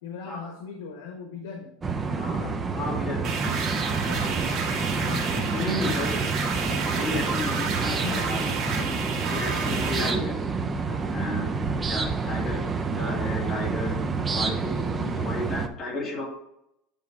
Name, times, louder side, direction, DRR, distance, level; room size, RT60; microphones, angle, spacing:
voice 1, 0.0-1.7 2.1-2.6 2.9-3.5 3.9-4.7 5.0-5.8 8.0-8.6 10.9-11.2, left 5 dB, 85° left, 2 dB, 1.2 m, -40 dB
sound 1, 1.8-15.7, right 4 dB, 15° right, 0.5 m, -28 dB
voice 2, 2.1-3.6 5.5-6.3 6.9-10.4 11.1-11.5 11.9-14.0 14.3-16.2, left 2 dB, 25° left, -4 dB, 2.3 m, -33 dB
sound 2, 3.2-10.1, right 5 dB, 40° right, 1.8 m, -30 dB
9.1 x 3.3 x 4.7 m, 0.79 s
supercardioid pair, 160°, 0 cm